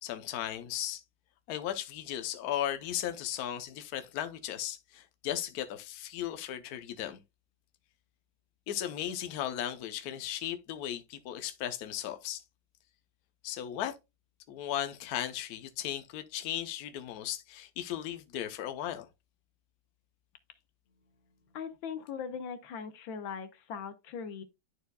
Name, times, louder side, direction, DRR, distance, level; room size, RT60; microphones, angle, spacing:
voice 1, 0.0-1.0 1.5-7.2 8.7-12.4 13.4-13.9 14.5-19.1, left 11 dB, 60° left, 1.1 m, -36 dB
voice 2, 21.5-24.4, left 6 dB, 80° left, 1.6 m, -40 dB
11.5 x 4.5 x 2.3 m
omnidirectional pair, 2.1 m